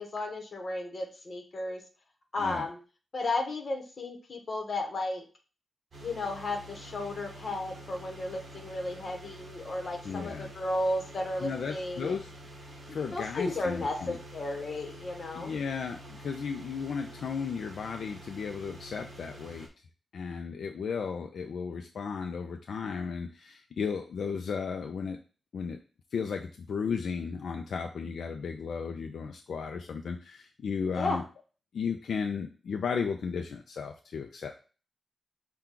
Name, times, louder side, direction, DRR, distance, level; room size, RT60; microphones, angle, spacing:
voice 1, 0.0-1.8 2.3-2.8 3.1-5.2 6.0-12.1 13.1-15.5 30.9-31.2, left 2 dB, 40° left, 3 dB, 1.0 m, -34 dB
sound 1, 5.9-19.7, equal, 35° right, 1.0 m, -48 dB
voice 2, 10.0-10.5 11.4-12.3 12.9-14.2 15.3-19.7 20.1-25.2 25.5-25.8 26.1-31.2 31.7-34.6, left 6 dB, 70° left, 4 dB, 0.4 m, -34 dB
5.8 x 2.2 x 3.7 m, 0.36 s
wide cardioid pair, 175°, 0 cm